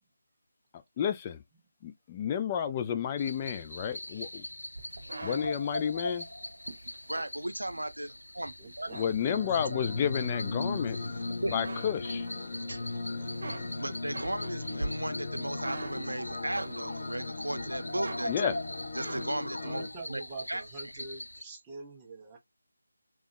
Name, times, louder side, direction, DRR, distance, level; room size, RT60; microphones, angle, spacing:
voice 1, 1.0-1.4 1.8-4.4 5.2-6.3 8.9-11.0 11.5-12.3 18.3-18.5, left 8 dB, 20° left, 0.5 m, -31 dB
sound 1, 3.2-21.4, left 1 dB, 80° left, 0.4 m, -42 dB
sound 2, 4.8-8.2 8.6-9.7 10.2-11.2 11.5-12.8 13.1-17.1 17.5-19.5, right 2 dB, 50° right, 1.2 m, -43 dB
voice 2, 7.1-8.9 9.7-9.9 10.9-11.6 12.4-18.6 18.9-20.2 20.5-20.6 20.9-21.1, right 1 dB, 80° right, 0.6 m, -36 dB
voice 3, 8.6-9.7 19.6-22.4, right 3 dB, 15° right, 0.7 m, -45 dB
sound 3, 9.3-19.9, left 3 dB, 40° left, 1.0 m, -38 dB
3.6 x 3.1 x 2.6 m
figure-of-eight pair, 160°, 0 cm